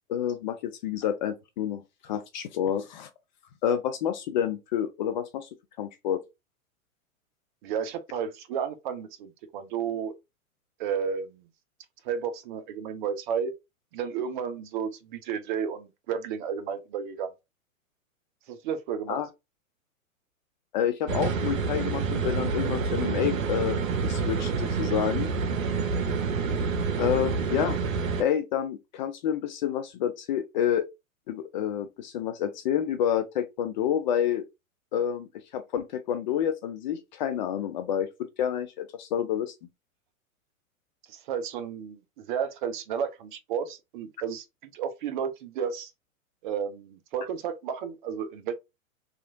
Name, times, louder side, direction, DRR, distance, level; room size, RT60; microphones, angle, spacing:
voice 1, 0.1-3.1 3.6-5.5 5.8-6.2 19.1-19.3 20.7-23.8 24.0-25.3 27.0-27.8 28.2-30.9 31.3-34.4 34.9-38.1 38.4-39.5, left 9 dB, 35° left, 0.4 m, -28 dB
voice 2, 7.6-10.1 10.8-11.4 12.0-13.5 13.9-17.3 18.5-19.2 41.1-44.4 44.7-45.9 46.4-48.5, right 7 dB, 35° right, 0.5 m, -32 dB
sound 1, 21.1-28.2, right 5 dB, 70° right, 0.7 m, -28 dB
2.9 x 2.4 x 2.6 m
hypercardioid pair, 110°, 42 cm